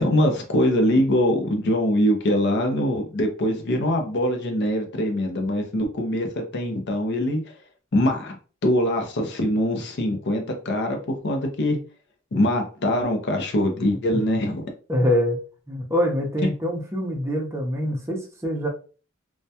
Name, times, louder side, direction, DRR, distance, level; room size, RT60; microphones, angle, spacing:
voice 1, 0.0-7.4 7.9-8.3 8.6-11.8 12.3-14.7, left 1 dB, 55° left, 4 dB, 0.5 m, -23 dB
voice 2, 14.9-15.4 15.7-18.7, equal, 15° right, 0 dB, 0.5 m, -24 dB
2.2 x 2.1 x 2.7 m, 0.36 s
head